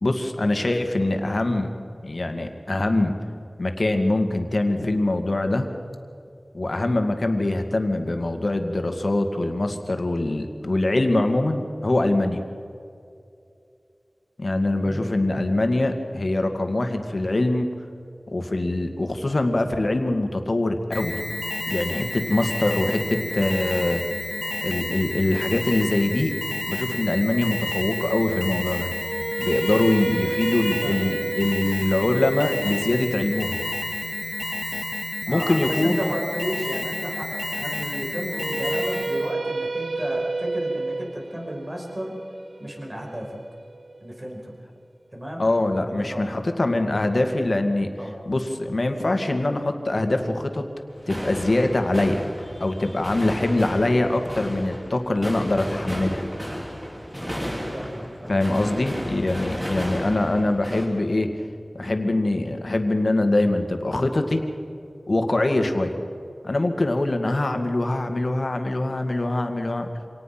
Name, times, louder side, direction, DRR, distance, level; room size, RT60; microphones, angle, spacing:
voice 1, 0.0-1.7 2.0-3.2 3.6-5.7 6.5-12.4 14.4-17.7 18.3-21.2 21.7-24.0 24.6-26.3 26.7-28.9 29.4-33.6 35.3-36.1 45.4-47.9 48.3-50.6 51.1-52.3 52.6-56.2 58.3-61.3 61.7-64.4 65.1-66.0 66.4-69.9, left 2 dB, 55° left, 6 dB, 2.2 m, -23 dB
voice 2, 14.8-15.2 30.0-30.1 30.8-31.1 35.3-42.2 42.6-43.4 44.0-44.6 45.1-45.5 45.9-46.3 48.0-48.2 57.7-58.4 59.5-59.6, equal, 30° right, 0 dB, 5.4 m, -33 dB
Alarm, 20.9-39.3, left 1 dB, 35° left, 0.7 m, -30 dB
sound 1, 28.9-35.0 38.3-44.3, right 3 dB, 75° right, 0.5 m, -31 dB
sound 2, 50.9-60.9, equal, 5° right, 7.2 m, -33 dB
26.0 x 18.5 x 6.0 m, 2.5 s
wide cardioid pair, 55°, 0 cm